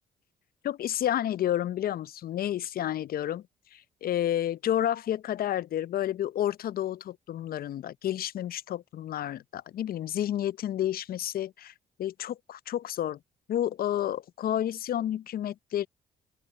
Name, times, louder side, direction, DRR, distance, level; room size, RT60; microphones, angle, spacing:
voice 1, 0.6-3.4 3.7-11.7 12.0-13.2 13.5-15.9, left 11 dB, 60° left, 0.7 m, -30 dB
open air
hypercardioid pair, 50°, 18 cm